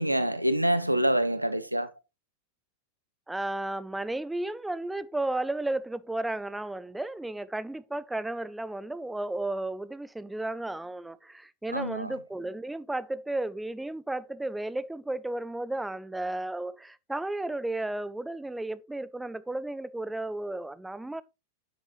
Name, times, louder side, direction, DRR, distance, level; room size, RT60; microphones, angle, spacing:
voice 1, 0.0-1.9 11.7-12.1, right 1 dB, 90° right, 1.0 m, -26 dB
voice 2, 3.3-21.2, right 2 dB, 5° right, 0.6 m, -33 dB
9.7 x 8.7 x 3.1 m
figure-of-eight pair, 90°, 0 cm